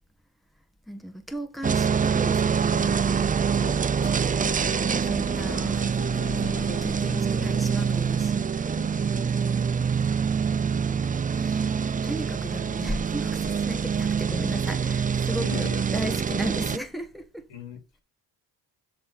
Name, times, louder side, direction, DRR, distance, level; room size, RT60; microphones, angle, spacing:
voice 1, 0.9-3.7 4.7-5.9 6.5-8.4 9.4-10.2 10.6-17.5, equal, ahead, 1.7 m, -36 dB
sound 1, 1.6-16.8, right 6 dB, 20° right, 0.4 m, -25 dB
sound 2, 3.9-9.5, left 5 dB, 45° left, 1.9 m, -43 dB
voice 2, 8.7-9.3 15.4-15.8 17.5-18.0, left 6 dB, 90° left, 3.0 m, -40 dB
7.6 x 3.8 x 5.9 m
supercardioid pair, 60°, 44 cm